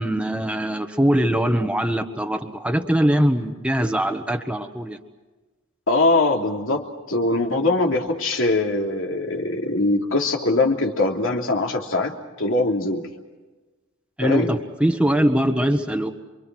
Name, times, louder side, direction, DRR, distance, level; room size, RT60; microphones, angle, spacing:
voice 1, 0.0-5.0 14.2-16.1, equal, 5° right, 5 dB, 1.4 m, -22 dB
voice 2, 5.9-13.1 14.2-14.5, left 2 dB, 70° left, 2 dB, 3.0 m, -22 dB
28.0 x 24.0 x 6.2 m, 1.2 s
head